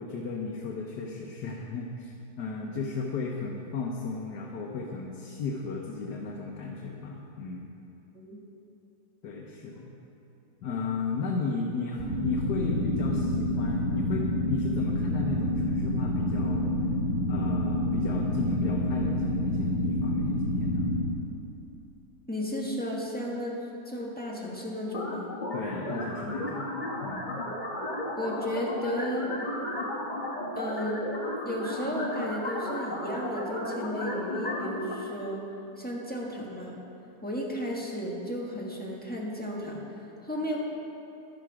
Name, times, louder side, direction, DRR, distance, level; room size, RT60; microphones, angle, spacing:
voice 1, 0.0-7.7 9.2-9.9 10.6-16.7 17.3-20.9 25.5-26.7 27.0-27.4, left 4 dB, 80° left, -1 dB, 1.5 m, -35 dB
sound 1, 12.0-21.0, left 1 dB, 65° right, 4.1 m, -28 dB
voice 2, 22.3-23.6 23.8-25.3 28.2-29.3 30.5-31.0 31.4-35.4 35.8-36.7 37.2-39.8 40.2-40.6, equal, 5° left, -4 dB, 1.5 m, -33 dB
sound 2, 24.9-34.9, left 1 dB, 30° left, 1.3 m, -34 dB
11.5 x 11.5 x 4.9 m, 2.8 s
omnidirectional pair, 1.8 m